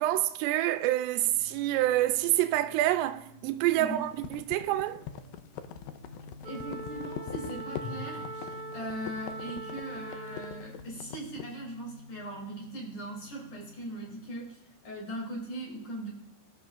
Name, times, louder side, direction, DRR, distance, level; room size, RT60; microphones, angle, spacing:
voice 1, 0.0-5.0, right 14 dB, 85° right, 2.7 m, -27 dB
sound 1, 1.3-14.3, left 2 dB, 20° right, 6.2 m, -50 dB
sound 2, 4.1-11.5, left 10 dB, 80° left, 2.2 m, -42 dB
Wind instrument woodwind instrument, 6.4-10.8, right 3 dB, 40° right, 3.3 m, -41 dB
voice 2, 6.5-16.1, right 1 dB, 45° left, 4.3 m, -39 dB
25.5 x 13.5 x 2.5 m
omnidirectional pair, 4.8 m